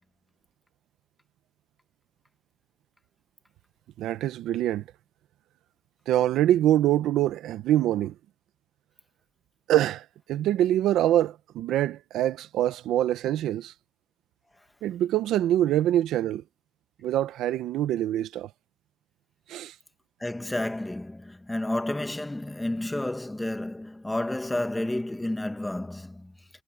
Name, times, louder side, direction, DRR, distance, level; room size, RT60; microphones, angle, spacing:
voice 1, 4.0-4.8 6.1-8.1 9.7-13.7 14.8-16.4 17.0-18.5 19.5-19.7, right 12 dB, 85° right, 1.1 m, -24 dB
voice 2, 20.2-26.3, left 1 dB, 10° left, 1.9 m, -31 dB
cardioid pair, 80°, 0 cm